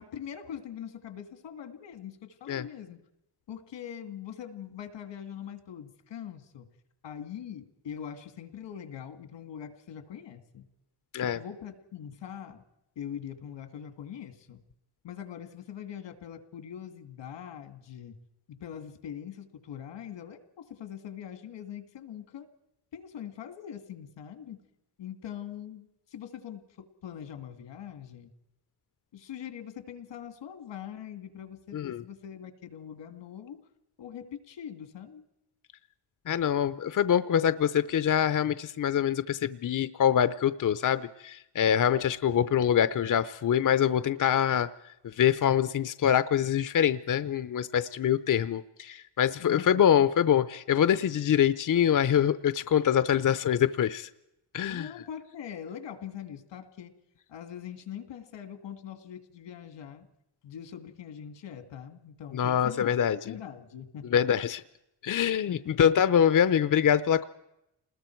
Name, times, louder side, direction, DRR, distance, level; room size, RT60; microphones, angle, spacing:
voice 1, 0.0-3.0 3.5-6.7 7.0-10.6 11.2-12.6 13.0-14.6 15.0-18.2 18.5-22.5 22.9-24.6 25.0-28.3 29.1-33.6 34.0-35.3 49.4-50.1 54.7-57.0 57.3-60.1 60.4-63.0 63.2-64.2 65.5-65.9, left 9 dB, 90° left, 8 dB, 2.1 m, -42 dB
voice 2, 31.7-32.0 36.3-44.7 45.0-54.1 54.5-54.9 62.3-63.3 64.1-64.6 65.0-67.3, left 9 dB, 45° left, 13 dB, 0.7 m, -25 dB
29.0 x 20.5 x 4.6 m, 0.87 s
cardioid pair, 110°, 42 cm